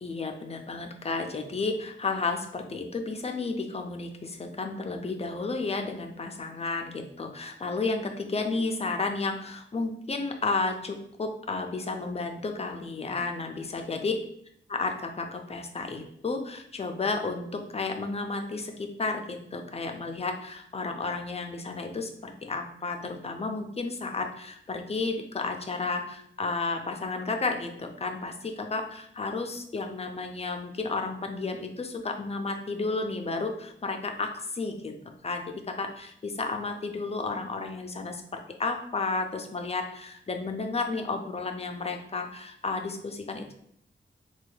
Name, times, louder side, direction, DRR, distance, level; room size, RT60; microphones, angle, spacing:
voice 1, 0.0-14.1 14.7-34.9 35.2-43.5, left 3 dB, 30° left, 4 dB, 0.4 m, -32 dB
3.2 x 2.3 x 3.2 m, 0.71 s
wide cardioid pair, 110°, 20 cm